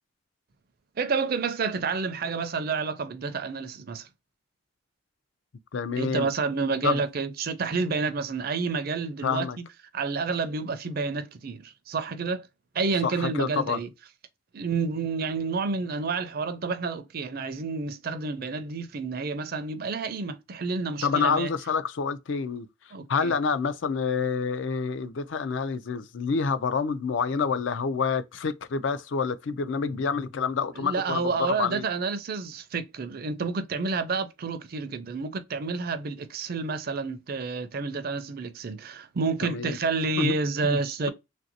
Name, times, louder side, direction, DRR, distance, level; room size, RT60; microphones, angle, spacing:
voice 1, 1.0-4.1 6.0-9.6 9.9-12.5 12.7-13.9 14.5-21.5 22.9-23.3 30.8-41.1, right 4 dB, 45° right, 0.4 m, -29 dB
voice 2, 5.7-6.3 6.8-7.0 9.2-9.6 13.0-13.8 21.0-22.7 23.1-31.9 39.4-39.8 40.2-40.3 40.6-40.8, left 5 dB, 65° left, 0.4 m, -27 dB
3.2 x 2.6 x 2.6 m
head